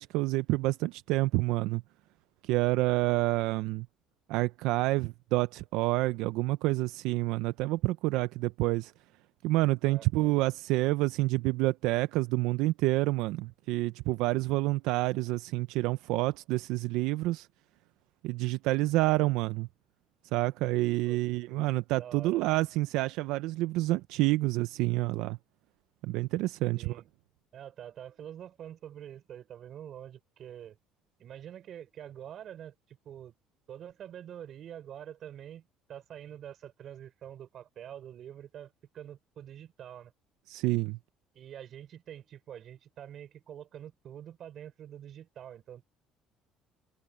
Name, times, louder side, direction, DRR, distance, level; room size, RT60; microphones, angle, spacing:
voice 1, 0.0-1.8 2.4-3.9 4.3-8.9 9.4-17.5 18.2-19.7 20.3-25.4 26.0-27.0 40.5-41.0, right 19 dB, 85° right, 0.4 m, -28 dB
voice 2, 21.1-21.6 21.9-22.5 26.7-27.0 27.5-30.8 31.2-33.3 33.7-40.1 41.3-45.8, right 10 dB, 45° right, 4.9 m, -46 dB
cardioid pair, 140°, 0 cm